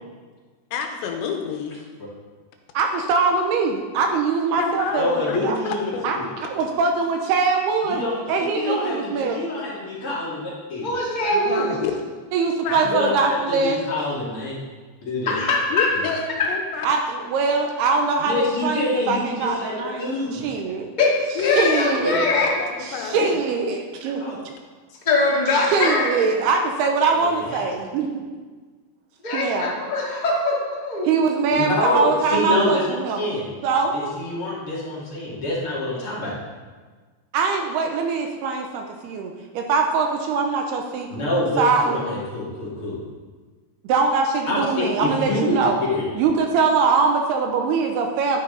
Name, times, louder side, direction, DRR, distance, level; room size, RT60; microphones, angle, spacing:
voice 1, 0.7-1.8 4.6-6.1 11.3-11.9 12.6-13.1 15.7-16.9 17.6-17.7 21.4-23.4, left 6 dB, 90° left, 4 dB, 3.3 m, -29 dB
voice 2, 2.7-5.6 6.0-8.0 8.3-9.4 12.3-13.9 16.8-17.0 17.3-20.1 20.3-20.9 21.6-22.2 22.9-24.2 25.6-28.2 29.3-29.8 31.0-33.2 33.6-33.9 37.3-41.3 41.6-42.1 43.8-45.8 46.2-48.4, right 4 dB, 75° right, 3 dB, 2.6 m, -22 dB
voice 3, 5.0-6.3 7.8-10.9 12.7-14.5 15.1-15.4 15.9-16.0 18.2-20.4 22.0-22.2 23.1-23.2 24.2-24.4 27.1-27.7 31.5-33.4 33.9-36.4 41.1-43.0 44.4-45.5 45.9-46.1, left 2 dB, 40° left, -6 dB, 2.5 m, -26 dB
voice 4, 10.8-11.8 15.2-15.9 21.0-22.5 25.0-26.1 29.2-31.1, left 3 dB, 20° left, -5 dB, 1.2 m, -22 dB
12.0 x 10.0 x 3.9 m, 1.4 s
omnidirectional pair, 5.0 m